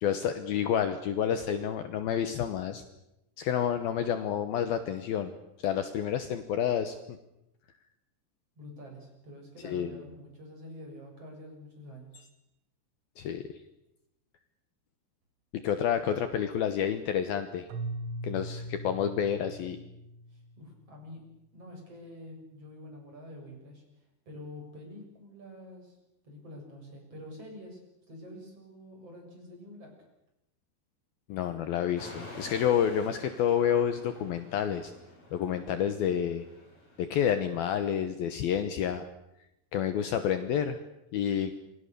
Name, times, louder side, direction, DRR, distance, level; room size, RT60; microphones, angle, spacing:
voice 1, 0.0-2.8 3.4-5.3 5.6-7.0 9.6-9.9 13.2-13.5 15.5-17.7 18.2-19.8 31.3-34.9 35.3-36.5 37.0-39.1 39.7-40.8 41.1-41.5, left 9 dB, 70° left, 9 dB, 2.7 m, -29 dB
voice 2, 8.6-12.1 20.3-21.2 21.5-26.0 26.2-27.8 28.1-29.9, left 1 dB, 35° right, 2 dB, 8.0 m, -47 dB
Keyboard (musical), 17.7-20.8, right 1 dB, 85° right, 4.1 m, -40 dB
sound 1, 32.0-38.0, left 1 dB, 30° left, 8.0 m, -49 dB
27.5 x 25.5 x 6.8 m, 0.86 s
omnidirectional pair, 5.1 m